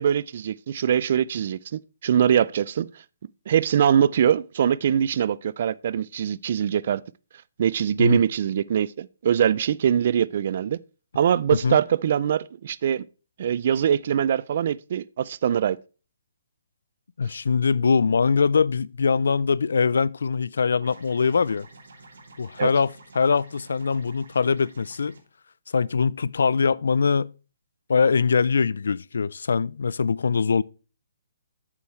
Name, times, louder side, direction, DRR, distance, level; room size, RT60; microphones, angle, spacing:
voice 1, 0.0-2.9 3.5-7.0 7.6-10.8 11.2-13.0 13.4-15.8 22.6-22.7, right 9 dB, 40° right, 0.3 m, -23 dB
voice 2, 17.2-21.7 22.4-25.1 25.7-27.3 27.9-30.6, left 5 dB, 75° left, 0.4 m, -22 dB
sound 1, 20.8-25.2, right 3 dB, 75° right, 2.9 m, -50 dB
8.8 x 7.0 x 3.1 m
hypercardioid pair, 175°, 0 cm